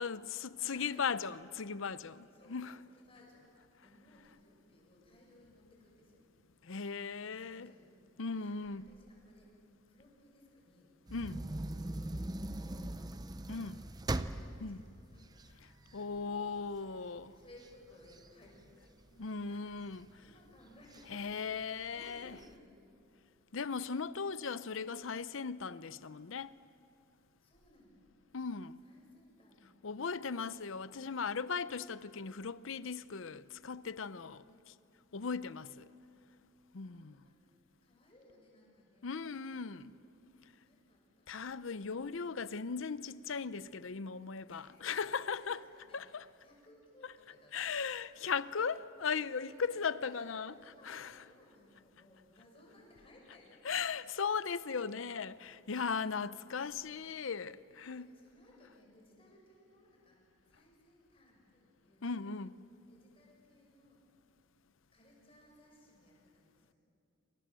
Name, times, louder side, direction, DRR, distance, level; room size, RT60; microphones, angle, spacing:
voice 1, 0.0-2.8 6.6-7.7 8.2-8.9 11.1-11.4 13.5-13.8 14.6-14.8 15.9-17.3 19.2-20.1 21.1-22.3 23.5-26.6 28.3-28.8 29.8-34.4 35.1-35.9 36.7-37.2 39.0-40.0 41.3-45.6 45.9-46.2 47.5-50.5 50.8-51.1 53.6-58.1 62.0-62.5, left 5 dB, 65° left, 0.7 m, -38 dB
voice 2, 0.6-1.3 2.3-3.5 3.8-6.2 7.2-8.0 8.4-11.2 11.5-12.1 12.6-13.6 14.4-16.3 16.8-18.9 19.5-21.3 21.6-22.8 27.4-28.1 28.8-30.0 34.3-34.5 36.7-40.1 40.5-41.4 44.5-45.0 45.3-48.3 49.0-54.1 58.0-62.3 62.9-64.0 64.9-66.8, left 1 dB, 25° left, 7.3 m, -62 dB
Open The Window, 11.1-16.3 16.7-16.8 17.2-19.2 19.8-20.3 20.9-21.0 21.3-21.4 21.9-22.5, right 1 dB, 20° right, 0.6 m, -40 dB
28.0 x 26.0 x 7.6 m
head